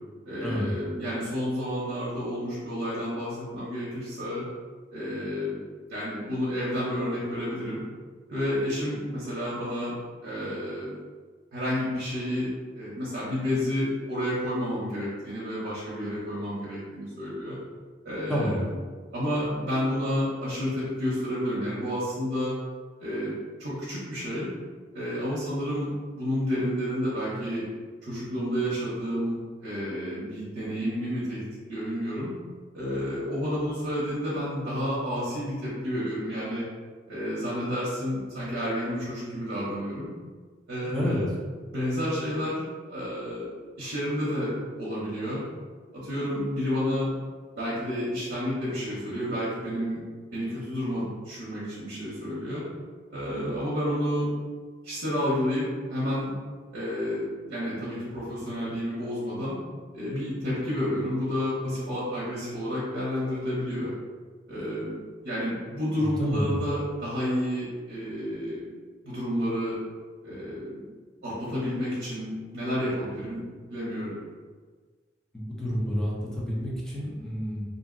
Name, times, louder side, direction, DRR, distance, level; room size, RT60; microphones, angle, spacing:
voice 1, 0.2-4.4 4.9-5.6 5.9-7.8 8.3-9.9 10.2-11.0 11.5-12.5 12.7-17.6 18.0-18.6 19.1-22.5 23.0-24.5 24.9-27.7 28.0-31.4 31.7-32.3 32.7-36.6 37.1-40.1 40.7-41.3 41.7-43.5 43.8-44.5 44.8-45.4 45.9-47.1 47.5-50.0 50.3-52.6 53.1-54.3 54.8-56.3 56.7-59.6 59.9-63.9 64.5-65.0 65.2-68.7 69.0-69.8 70.2-70.8 71.2-73.4 73.7-74.2, equal, 60° right, -8 dB, 0.8 m, -30 dB
voice 2, 18.3-18.7 40.8-41.2 66.0-66.5 75.3-77.6, equal, 5° left, -6 dB, 0.6 m, -29 dB
2.6 x 2.0 x 3.7 m, 1.5 s
head